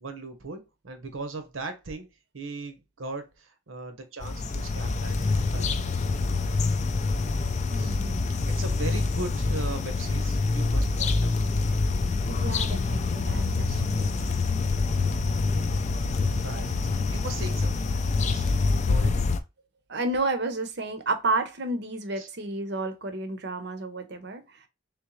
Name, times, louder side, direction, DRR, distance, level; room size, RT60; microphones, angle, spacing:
voice 1, 0.0-2.1 2.3-5.2 5.5-6.3 7.8-8.0 8.5-11.3 13.6-13.8 16.4-17.8 18.2-18.5 18.8-19.1 22.2-22.3, right 3 dB, 85° right, 1.0 m, -38 dB
sound 1, 4.2-19.4, left 3 dB, 35° left, 0.4 m, -26 dB
voice 2, 7.7-8.3 12.3-14.4 19.9-24.4, right 2 dB, 55° right, 0.7 m, -31 dB
3.7 x 3.2 x 3.1 m
head